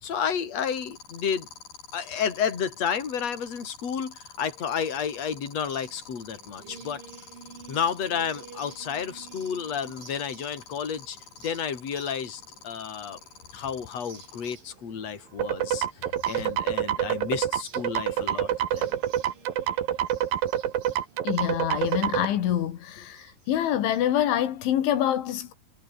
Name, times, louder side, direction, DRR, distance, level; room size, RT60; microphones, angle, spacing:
voice 1, 0.0-1.5 1.9-7.0 7.7-13.2 13.5-15.9 16.2-19.0, left 7 dB, 35° left, 4.6 m, -31 dB
sound 1, 0.6-14.5, left 6 dB, 55° left, 5.9 m, -46 dB
sound 2, 5.3-24.1, right 6 dB, 85° right, 8.3 m, -52 dB
sound 3, 15.4-22.3, right 11 dB, 60° right, 3.0 m, -27 dB
voice 2, 21.2-25.5, left 11 dB, 85° left, 4.6 m, -26 dB
omnidirectional pair, 5.3 m